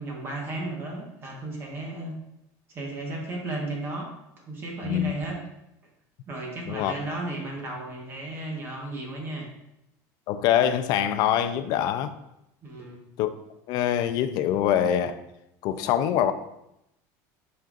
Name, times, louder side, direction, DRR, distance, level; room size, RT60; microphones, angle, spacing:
voice 1, 0.0-2.1 2.7-4.1 4.5-5.4 6.3-9.5 12.6-13.0, right 2 dB, 25° right, 1.3 m, -34 dB
voice 2, 10.3-12.1 13.2-13.3 13.7-15.2 15.6-16.3, left 10 dB, 50° left, 0.5 m, -24 dB
9.1 x 5.4 x 2.5 m
cardioid pair, 160°, 9 cm